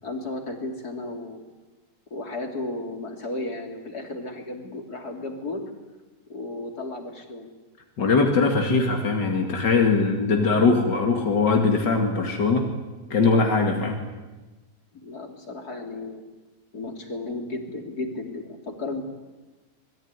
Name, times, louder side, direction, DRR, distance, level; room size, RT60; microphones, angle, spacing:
voice 1, 0.0-1.4 2.1-5.7 6.3-7.5 13.8-14.0 14.9-16.2 16.7-19.0, left 2 dB, 60° left, 3 dB, 3.8 m, -34 dB
voice 2, 8.0-12.7 13.1-14.0, left 4 dB, 90° left, 2 dB, 3.0 m, -21 dB
27.0 x 22.0 x 9.8 m, 1.2 s
omnidirectional pair, 1.8 m